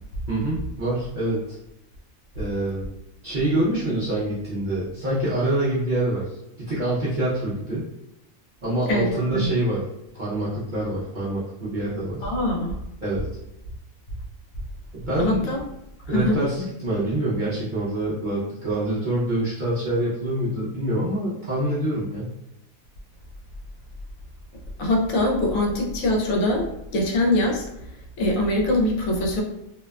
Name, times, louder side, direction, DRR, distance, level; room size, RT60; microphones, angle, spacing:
voice 1, 0.3-1.6 2.4-2.9 3.2-7.9 8.6-9.8 10.1-12.3 13.0-13.3 14.9-15.5 16.1-22.3, right 1 dB, 55° right, -9 dB, 0.5 m, -26 dB
voice 2, 8.9-9.5 12.2-12.8 15.2-15.6 16.1-16.4 24.8-27.6 28.2-29.4, left 1 dB, 75° left, 0 dB, 1.0 m, -23 dB
2.6 x 2.2 x 2.2 m, 0.88 s
omnidirectional pair, 1.5 m